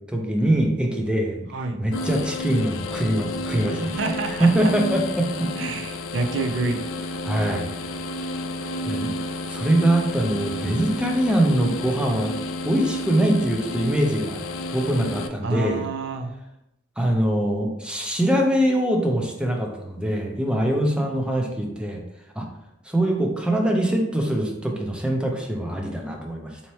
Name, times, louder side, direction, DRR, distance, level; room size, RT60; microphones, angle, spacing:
voice 1, 0.0-1.5 1.8-4.0 4.4-5.5 7.2-7.7 8.9-9.1 9.5-12.3 12.7-14.4 14.7-15.8 17.0-22.0 22.4-22.5 22.9-26.6, right 1 dB, 5° right, 1 dB, 0.5 m, -23 dB
voice 2, 1.5-1.8 3.9-4.7 5.6-7.2 15.4-16.3, right 3 dB, 65° right, 6 dB, 0.5 m, -28 dB
sound 1, 1.9-15.3, left 1 dB, 75° left, 0.4 m, -31 dB
4.2 x 2.8 x 3.1 m, 0.86 s
head